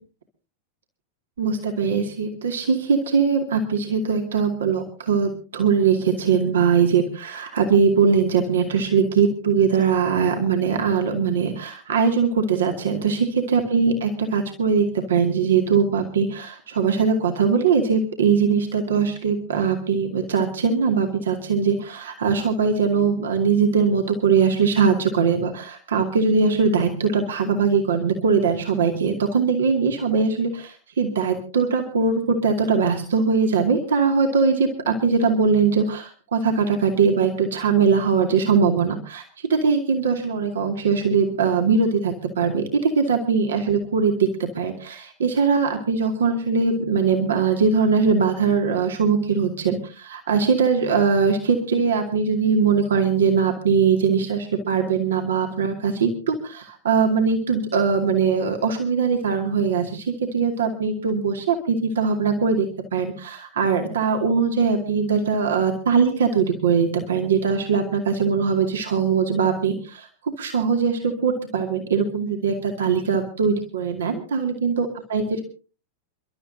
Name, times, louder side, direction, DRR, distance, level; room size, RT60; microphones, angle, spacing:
voice 1, 1.4-39.2 39.5-62.7 62.9-70.1 70.4-75.4, right 5 dB, 65° right, 3 dB, 2.5 m, -21 dB
29.0 x 12.5 x 2.8 m, 0.36 s
figure-of-eight pair, 90°, 0 cm